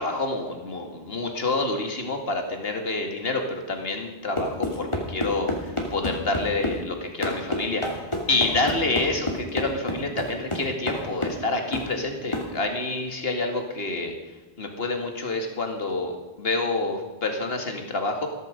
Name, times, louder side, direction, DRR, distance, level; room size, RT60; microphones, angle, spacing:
voice 1, 0.0-14.2 14.6-16.1 16.4-18.3, left 2 dB, 65° left, 4 dB, 2.3 m, -28 dB
sound 1, 4.4-6.8 7.2-11.4 11.7-11.9 12.3-12.5, left 1 dB, 25° left, 2.8 m, -29 dB
15.0 x 15.0 x 5.2 m, 1.1 s
omnidirectional pair, 1.1 m